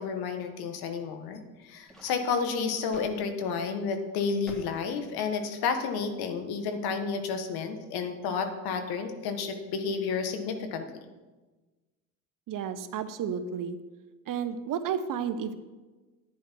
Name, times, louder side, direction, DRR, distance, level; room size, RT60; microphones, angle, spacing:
voice 1, 0.0-10.9, left 5 dB, 70° left, 7 dB, 1.6 m, -31 dB
sound 1, 1.4-3.2 3.5-3.7 4.5-5.7, right 1 dB, ahead, 3.3 m, -50 dB
voice 2, 12.5-13.8 14.3-15.6, right 7 dB, 55° right, 10 dB, 1.1 m, -32 dB
11.0 x 9.4 x 4.7 m, 1.2 s
hypercardioid pair, 65°, 39 cm